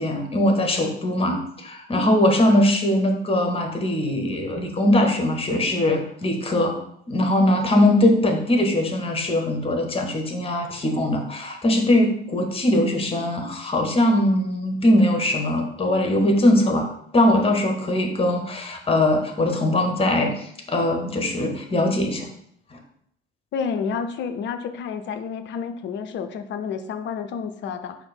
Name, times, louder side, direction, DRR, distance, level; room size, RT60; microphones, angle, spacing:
voice 1, 0.0-6.8 7.1-22.3 22.7-22.8, left 1 dB, 20° left, 3 dB, 0.9 m, -21 dB
voice 2, 23.5-28.0, left 6 dB, 35° left, 9 dB, 0.5 m, -30 dB
4.2 x 2.7 x 4.2 m, 0.69 s
figure-of-eight pair, 55°, 31 cm